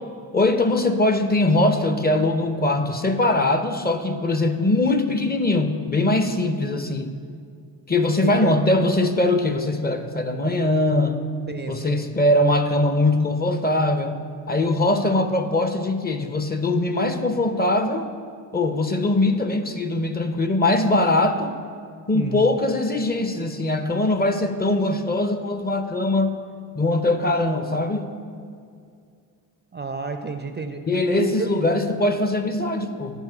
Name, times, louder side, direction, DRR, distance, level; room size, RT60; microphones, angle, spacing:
voice 1, 0.3-7.1 7.9-11.2 11.7-14.2 14.5-18.1 18.5-21.6 22.1-26.4 26.7-28.1 30.9-33.2, left 2 dB, 20° left, 7 dB, 0.6 m, -21 dB
voice 2, 8.2-8.5 11.5-12.1 22.1-22.6 29.7-30.8 31.1-31.5, right 4 dB, 25° right, 7 dB, 0.5 m, -30 dB
8.1 x 4.3 x 6.0 m, 2.3 s
hypercardioid pair, 40°, 48 cm